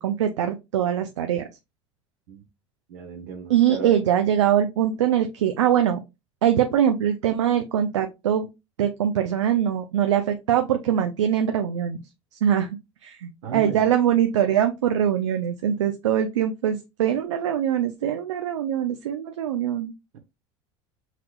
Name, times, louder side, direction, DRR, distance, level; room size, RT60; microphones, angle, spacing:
voice 1, 0.0-1.5 3.5-6.0 6.4-8.5 8.8-12.0 12.3-19.9, right 10 dB, 85° right, 0.5 m, -23 dB
voice 2, 2.9-3.9 13.4-13.9 20.1-20.2, right 6 dB, 70° right, 1.0 m, -35 dB
5.7 x 3.1 x 2.3 m
hypercardioid pair, 80°, 15 cm